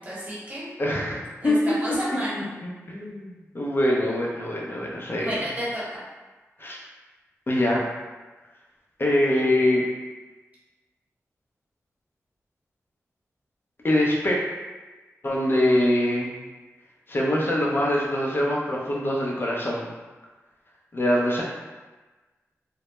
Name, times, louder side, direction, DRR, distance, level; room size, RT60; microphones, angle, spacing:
voice 1, 0.0-0.7 1.4-2.5 5.2-6.0, equal, 25° right, -8 dB, 1.2 m, -31 dB
voice 2, 0.8-1.7 2.4-5.4 6.6-6.8 7.5-7.8 9.0-9.8 13.8-14.4 15.2-16.3 17.1-19.9 20.9-21.4, left 1 dB, 40° left, -4 dB, 0.6 m, -24 dB
2.2 x 2.0 x 2.9 m, 1.2 s
cardioid pair, 50°, 5 cm